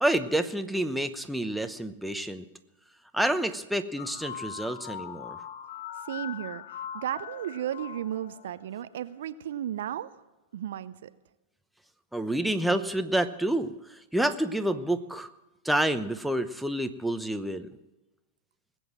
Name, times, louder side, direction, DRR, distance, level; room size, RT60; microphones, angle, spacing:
voice 1, 0.0-2.5 3.1-5.4 12.1-15.3 15.6-17.7, right 1 dB, ahead, 8 dB, 0.9 m, -28 dB
sound 1, 4.0-9.0, left 9 dB, 60° left, 0.6 m, -41 dB
voice 2, 6.0-10.2 10.5-11.1, right 11 dB, 65° right, 14 dB, 0.6 m, -34 dB
20.0 x 8.0 x 7.5 m, 1.0 s
hypercardioid pair, 100°, 0 cm